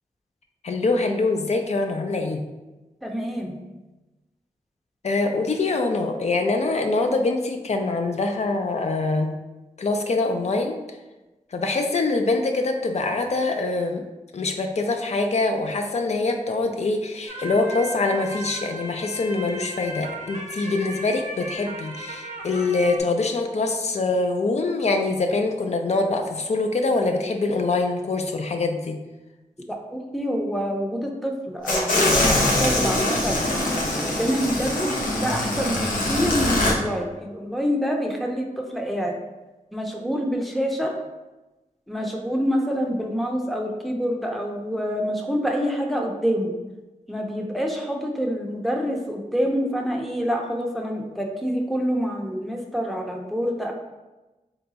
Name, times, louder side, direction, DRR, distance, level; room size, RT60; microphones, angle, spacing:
voice 1, 0.6-2.4 5.0-9.3 9.8-10.8 11.5-14.0 14.3-29.0, left 3 dB, 55° left, 4 dB, 0.4 m, -24 dB
voice 2, 3.0-3.6 29.7-33.5 34.0-34.9 35.2-39.2 39.7-40.9 41.9-46.5 47.1-53.7, equal, ahead, 0 dB, 0.6 m, -26 dB
sound 1, 17.3-23.0, right 1 dB, 60° right, 0.7 m, -36 dB
sound 2, 31.7-36.7, left 1 dB, 90° left, 0.8 m, -23 dB
3.9 x 2.3 x 3.9 m, 1.1 s
wide cardioid pair, 100°, 14 cm